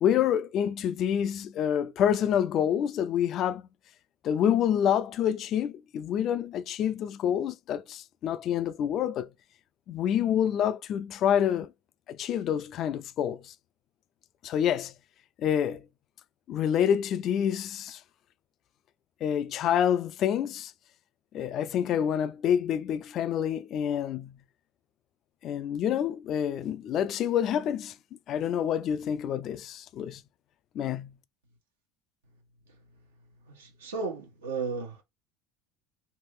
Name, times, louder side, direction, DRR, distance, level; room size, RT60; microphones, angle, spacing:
voice 1, 0.0-3.7 4.2-9.3 9.9-11.7 12.1-13.5 14.4-14.9 15.4-15.9 16.5-18.0 19.2-20.7 21.3-24.4 25.4-28.0 28.3-30.2 30.7-31.2, left 9 dB, 50° left, 0.3 m, -27 dB
voice 2, 33.5-35.0, right 4 dB, 85° right, 1.1 m, -34 dB
3.3 x 2.6 x 3.0 m
hypercardioid pair, 70°, 0 cm